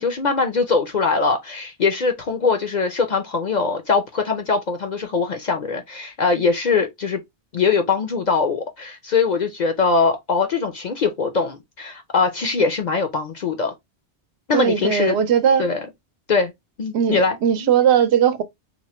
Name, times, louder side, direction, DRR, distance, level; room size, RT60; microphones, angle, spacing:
voice 1, 0.0-7.2 7.5-13.7 14.5-15.2 15.6-15.8 16.3-16.5 16.8-17.7, left 4 dB, 50° left, 0.6 m, -22 dB
voice 2, 14.5-15.6 16.9-18.4, right 8 dB, 75° right, 0.9 m, -18 dB
2.9 x 2.1 x 4.1 m
omnidirectional pair, 1.1 m